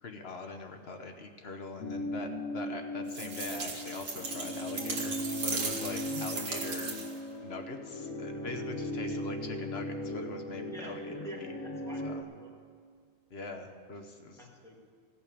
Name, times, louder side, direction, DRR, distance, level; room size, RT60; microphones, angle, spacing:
voice 1, 0.0-7.0 7.4-11.0 11.4-11.5 12.0-12.2 13.3-14.5, left 3 dB, 55° left, 5 dB, 1.1 m, -43 dB
sound 1, 1.8-12.2, left 1 dB, 80° left, 1.3 m, -38 dB
sound 2, 3.1-7.3, right 4 dB, 85° right, 1.6 m, -37 dB
voice 2, 10.7-12.5 14.4-14.8, left 1 dB, ahead, -4 dB, 2.1 m, -46 dB
16.0 x 5.8 x 8.4 m, 2.1 s
omnidirectional pair, 1.3 m